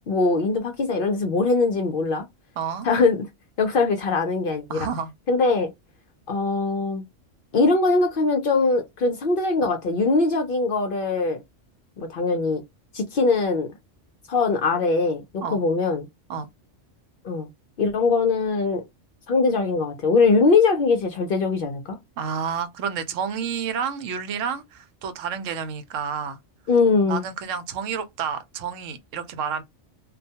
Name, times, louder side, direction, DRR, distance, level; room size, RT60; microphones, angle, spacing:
voice 1, 0.1-2.2 2.8-3.3 3.6-4.9 5.3-5.7 6.3-7.0 7.5-11.4 12.0-12.6 12.9-13.7 14.3-15.2 15.5-16.1 17.2-17.5 17.8-18.8 19.3-22.0 26.7-27.2, left 3 dB, 60° left, 0.6 m, -21 dB
voice 2, 2.6-2.9 4.7-5.1 15.4-15.6 16.3-16.5 22.2-26.4 27.0-29.6, right 7 dB, 85° right, 0.9 m, -30 dB
2.3 x 2.2 x 2.7 m
omnidirectional pair, 1.3 m